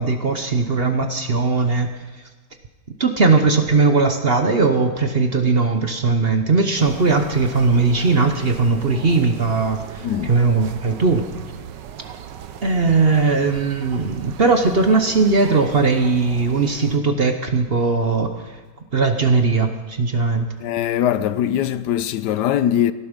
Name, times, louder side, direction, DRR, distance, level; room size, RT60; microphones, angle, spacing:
voice 1, 0.0-1.9 3.0-11.2 12.6-18.6 18.9-20.5, right 4 dB, 45° right, 1.0 m, -19 dB
sound 1, 6.8-17.0, right 9 dB, 90° right, 1.5 m, -37 dB
voice 2, 20.6-22.9, left 10 dB, 75° left, 1.2 m, -21 dB
18.0 x 12.5 x 5.2 m
omnidirectional pair, 1.8 m